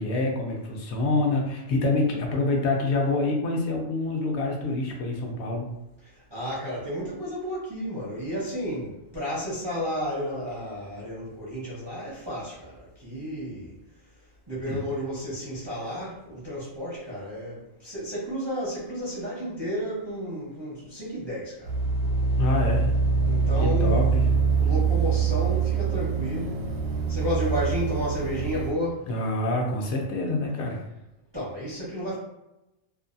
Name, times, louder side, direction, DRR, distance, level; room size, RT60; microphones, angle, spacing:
voice 1, 0.0-5.7 14.7-14.8 22.4-22.9 23.6-24.2 29.1-30.8, left 2 dB, 65° left, 0 dB, 0.8 m, -26 dB
voice 2, 6.1-13.8 14.5-21.7 23.2-24.0 24.6-26.7 27.1-29.1 31.3-32.2, equal, 30° right, -8 dB, 0.5 m, -32 dB
sound 1, 21.6-28.7, right 5 dB, 80° right, 1.1 m, -24 dB
2.5 x 2.3 x 2.5 m, 0.90 s
omnidirectional pair, 1.4 m